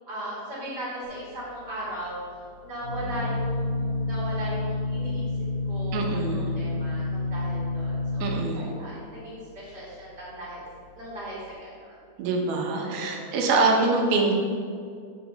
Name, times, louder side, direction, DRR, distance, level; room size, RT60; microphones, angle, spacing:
voice 1, 0.1-2.2 2.6-5.3 5.7-10.6 11.0-12.0 12.8-13.5, right 1 dB, 30° right, -8 dB, 2.5 m, -37 dB
Organ, 1.0-11.5, left 2 dB, 60° right, 3.1 m, -30 dB
voice 2, 5.9-6.6 8.2-8.7 12.2-14.3, right 3 dB, 90° right, 1 dB, 3.0 m, -24 dB
9.9 x 4.3 x 5.7 m, 2.2 s
omnidirectional pair, 4.2 m